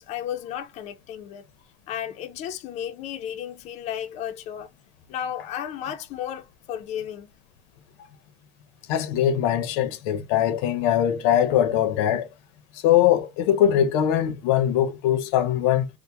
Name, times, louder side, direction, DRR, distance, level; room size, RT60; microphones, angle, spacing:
voice 1, 0.0-1.4 1.9-4.7 5.1-7.3 8.0-8.1, left 10 dB, 50° left, 0.5 m, -33 dB
voice 2, 8.9-12.3 12.8-15.9, left 10 dB, 85° left, 0.7 m, -21 dB
3.3 x 2.1 x 3.0 m
cardioid pair, 145°, 15 cm